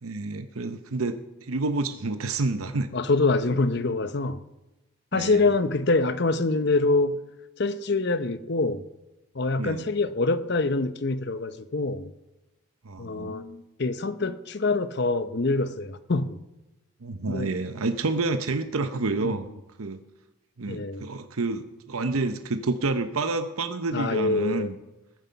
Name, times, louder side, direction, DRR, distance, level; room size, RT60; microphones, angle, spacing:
voice 1, 0.0-2.9 5.1-5.4 9.6-9.8 12.8-13.4 17.0-19.5 19.8-20.0 20.6-24.7, right 3 dB, 80° right, 0.8 m, -29 dB
voice 2, 2.9-4.4 5.1-7.2 7.6-8.8 9.3-12.1 13.0-16.4 17.3-17.5 19.2-19.3 20.7-21.1 23.9-24.7, left 3 dB, 50° left, 0.7 m, -25 dB
20.0 x 9.3 x 5.7 m
head